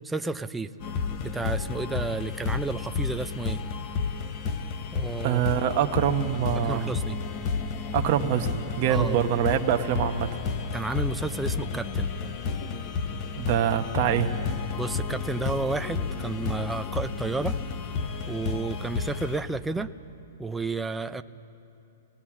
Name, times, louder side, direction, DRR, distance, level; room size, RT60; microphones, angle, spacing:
voice 1, 0.0-0.7 1.2-3.6 4.9-5.4 6.6-7.2 8.9-9.2 10.7-12.1 14.8-17.6 18.3-19.9 20.4-21.2, right 3 dB, 5° right, 10 dB, 0.4 m, -31 dB
sound 1, 0.8-19.4, left 5 dB, 35° left, 1.1 m, -31 dB
voice 2, 5.2-6.9 7.9-10.3 13.4-14.4, right 10 dB, 45° right, 5 dB, 1.0 m, -25 dB
19.5 x 19.0 x 7.4 m, 2.7 s
hypercardioid pair, 140°, 0 cm